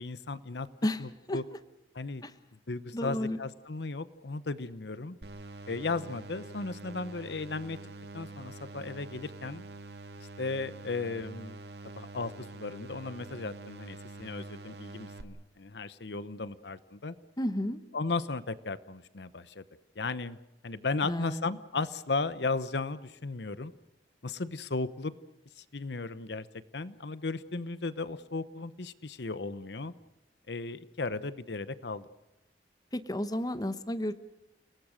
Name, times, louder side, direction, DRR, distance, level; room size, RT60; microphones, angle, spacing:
voice 1, 0.0-0.7 1.0-1.4 1.9-2.2 2.7-5.2 5.7-7.8 8.1-9.6 10.4-11.6 11.9-17.2 17.9-19.6 20.0-20.4 20.6-23.7 24.2-25.1 25.6-26.5 26.7-29.9 30.5-32.1, left 3 dB, 70° left, 15 dB, 0.9 m, -35 dB
voice 2, 2.9-3.4 17.4-17.8 21.0-21.5 32.9-34.1, left 1 dB, 20° left, 11 dB, 1.0 m, -32 dB
sound 1, 5.2-15.2, right 2 dB, 65° right, 2.0 m, -46 dB
30.0 x 19.0 x 6.5 m, 0.92 s
head